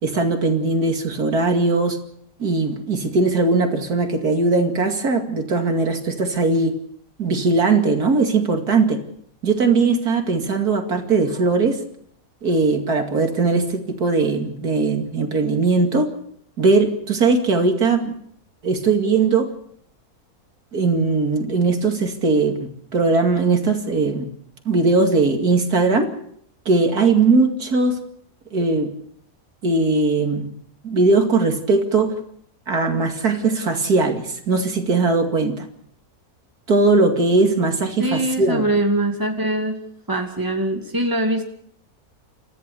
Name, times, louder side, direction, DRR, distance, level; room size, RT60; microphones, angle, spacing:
voice 1, 0.0-2.0 2.4-6.7 7.2-9.0 9.4-11.8 12.4-16.1 16.6-18.1 18.6-19.5 20.7-24.3 24.7-26.1 26.7-28.0 28.5-28.9 29.6-30.5 30.8-32.1 32.7-35.7 36.7-38.6, right 3 dB, 75° right, 5 dB, 2.8 m, -19 dB
voice 2, 38.0-39.8 40.1-41.4, right 1 dB, 15° right, 3 dB, 2.4 m, -22 dB
29.0 x 14.5 x 6.9 m, 0.68 s
omnidirectional pair, 1.6 m